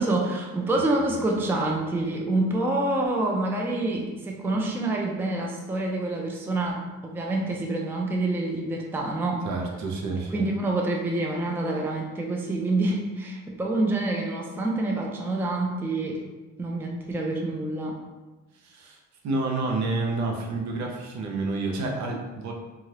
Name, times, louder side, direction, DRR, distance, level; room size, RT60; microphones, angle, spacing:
voice 1, 0.0-9.4 10.3-16.2 16.6-18.0, right 2 dB, 10° right, 0 dB, 0.4 m, -27 dB
voice 2, 9.4-10.5 18.6-19.0 19.2-22.5, right 3 dB, 70° right, 1 dB, 0.6 m, -29 dB
2.6 x 2.3 x 3.2 m, 1.2 s
cardioid pair, 90°, 30 cm